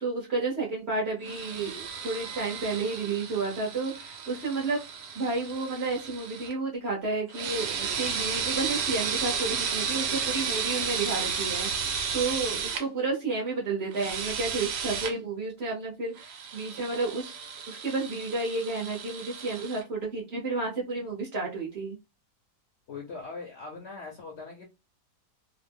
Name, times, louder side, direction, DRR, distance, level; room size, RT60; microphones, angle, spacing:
voice 1, 0.0-4.8 5.1-17.3 17.7-22.0, right 3 dB, 50° right, -2 dB, 1.0 m, -31 dB
sound 1, 1.3-6.5 7.3-12.8 13.9-15.1 16.2-19.8, right 6 dB, 85° right, 1.2 m, -33 dB
voice 2, 22.9-24.6, left 4 dB, 60° left, 0 dB, 0.7 m, -40 dB
2.9 x 2.0 x 3.4 m, 0.26 s
omnidirectional pair, 1.7 m